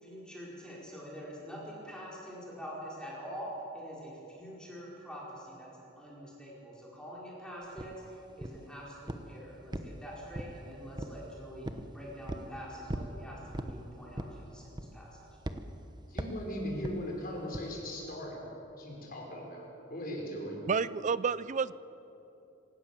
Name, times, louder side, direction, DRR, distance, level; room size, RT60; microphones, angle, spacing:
voice 1, 0.0-5.7 6.0-11.7 11.9-15.2, equal, 5° left, -5 dB, 4.6 m, -45 dB
sound 1, 7.8-7.9 8.4-8.7 9.1-9.3 9.7-10.6 11.0-11.2 11.6-11.9 12.3-12.5 12.9-13.2 13.5-13.8 14.2-14.4 14.8-15.1 15.4-15.6 16.2-16.4 16.8-17.0 17.5-17.7, right 1 dB, 25° right, 1.0 m, -38 dB
voice 2, 16.1-18.4 18.8-20.6, equal, 50° left, -1 dB, 5.6 m, -39 dB
voice 3, 20.7-21.7, right 5 dB, 40° right, 18 dB, 0.4 m, -30 dB
26.0 x 17.0 x 7.4 m, 2.9 s
head